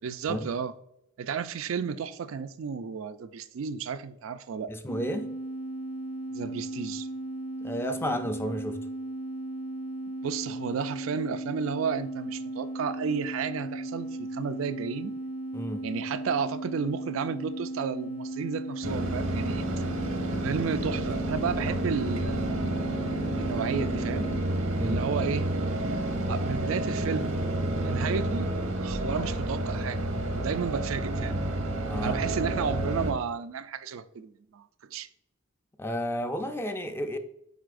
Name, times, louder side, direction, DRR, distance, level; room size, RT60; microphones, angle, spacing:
voice 1, 0.0-0.7 1.2-4.7 6.3-7.1 10.2-15.1 15.8-19.8 20.4-22.7 23.4-24.3 24.8-25.5 26.3-27.4 27.8-28.5 28.8-30.1 30.3-31.4 32.0-35.1, right 6 dB, 70° right, 0.4 m, -32 dB
voice 2, 4.7-5.3 7.6-8.8 15.5-15.9 24.7-25.0 31.9-32.3 35.8-37.2, equal, 10° left, 0.4 m, -32 dB
sound 1, 4.9-24.4, right 1 dB, 65° left, 2.5 m, -36 dB
sound 2, 18.8-33.1, right 1 dB, 85° right, 1.1 m, -30 dB
9.3 x 4.1 x 2.5 m
head